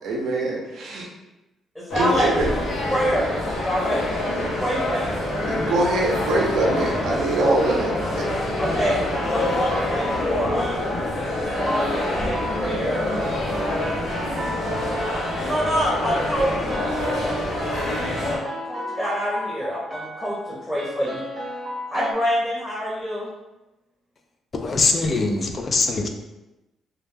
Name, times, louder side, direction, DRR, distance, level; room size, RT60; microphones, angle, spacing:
voice 1, 0.0-1.1 1.9-2.5 5.5-7.9, right 2 dB, 75° right, -2 dB, 0.5 m, -23 dB
voice 2, 1.7-2.3 2.9-5.1 8.6-9.0 9.3-10.9 11.5-13.1 15.4-16.5 18.6-21.2 21.9-23.3, equal, 10° left, -7 dB, 0.8 m, -26 dB
sound 1, 1.9-18.4, left 1 dB, 70° left, 0.7 m, -26 dB
sound 2, 8.6-22.1, equal, 35° right, 0.7 m, -34 dB
voice 3, 24.5-26.1, left 3 dB, 40° left, 4 dB, 0.3 m, -22 dB
2.2 x 2.1 x 3.1 m, 0.99 s
cardioid pair, 90°, 0 cm